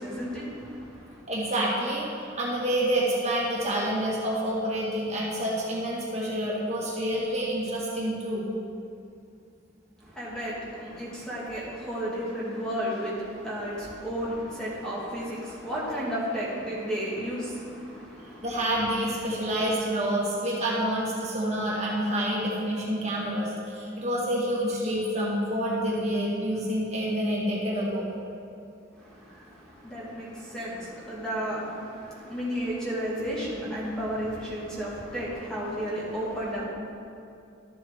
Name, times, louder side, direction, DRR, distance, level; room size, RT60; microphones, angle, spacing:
voice 1, 0.0-1.2 10.0-18.7 19.0-19.4 28.9-36.6, equal, 5° left, -7 dB, 1.7 m, -33 dB
voice 2, 1.3-8.5 18.4-28.1, right 1 dB, 35° right, -5 dB, 1.6 m, -28 dB
12.5 x 7.2 x 3.5 m, 2.6 s
head